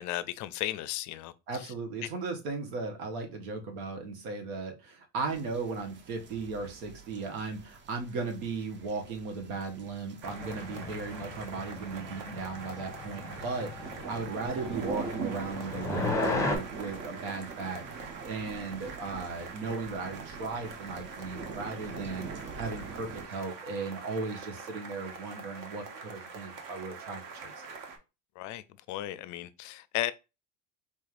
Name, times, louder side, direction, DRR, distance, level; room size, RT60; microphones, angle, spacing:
voice 1, 0.0-1.7 28.4-30.1, left 14 dB, 45° left, 0.4 m, -35 dB
voice 2, 1.5-22.3 22.6-27.5, right 4 dB, 80° right, 1.3 m, -36 dB
sound 1, 5.3-23.3, right 4 dB, 25° right, 0.6 m, -44 dB
sound 2, 10.2-16.6, left 2 dB, 5° left, 0.9 m, -35 dB
sound 3, 10.2-28.0, right 4 dB, 50° right, 1.0 m, -45 dB
4.4 x 3.2 x 2.5 m
supercardioid pair, 105°, 41 cm